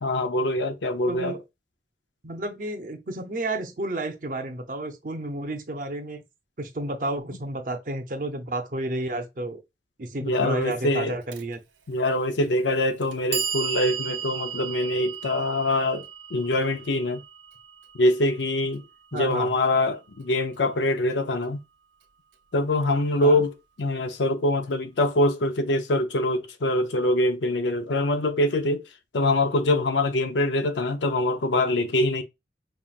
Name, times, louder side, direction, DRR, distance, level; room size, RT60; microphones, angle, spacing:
voice 1, 0.0-1.4 10.2-11.2 11.9-16.1 16.3-17.2 18.0-18.8 19.1-21.6 22.5-23.5 23.8-28.8 29.1-32.2, left 1 dB, 80° left, 0.6 m, -24 dB
voice 2, 1.1-1.4 2.2-6.2 6.6-9.6 10.0-11.6 19.1-19.5 23.2-23.5, right 2 dB, 45° right, 0.6 m, -31 dB
Clock, 11.3-11.4 12.4-12.5 13.0-19.1, right 8 dB, 90° right, 0.6 m, -35 dB
5.5 x 2.4 x 2.4 m
head